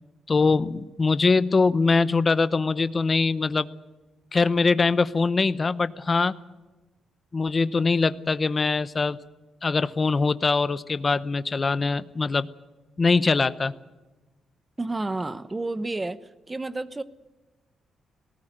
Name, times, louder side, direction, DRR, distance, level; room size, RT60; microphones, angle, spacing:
voice 1, 0.3-3.7 4.3-6.4 7.3-9.2 9.6-12.5 13.0-13.7, left 4 dB, 30° left, 15 dB, 0.8 m, -22 dB
voice 2, 14.8-16.2 16.5-17.0, right 2 dB, 15° right, 14 dB, 1.0 m, -30 dB
19.0 x 18.5 x 9.0 m, 1.1 s
cardioid pair, 125°, 0 cm